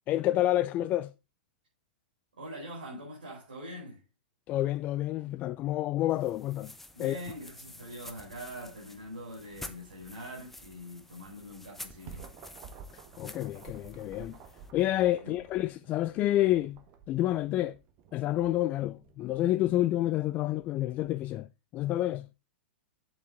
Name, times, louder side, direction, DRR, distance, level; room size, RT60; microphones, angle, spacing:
voice 1, 0.1-1.1 4.5-6.7 7.0-7.2 13.2-14.4 14.7-16.8 17.1-17.8 18.1-21.5 21.7-22.3, left 14 dB, 35° left, 0.3 m, -29 dB
voice 2, 2.4-4.0 6.9-12.3 15.2-15.3, equal, 80° right, 4.7 m, -43 dB
sound 1, 6.1-14.7, left 1 dB, 5° left, 1.1 m, -50 dB
sound 2, 11.6-21.1, right 6 dB, 40° right, 1.5 m, -52 dB
8.6 x 7.2 x 3.7 m
figure-of-eight pair, 100°, 5 cm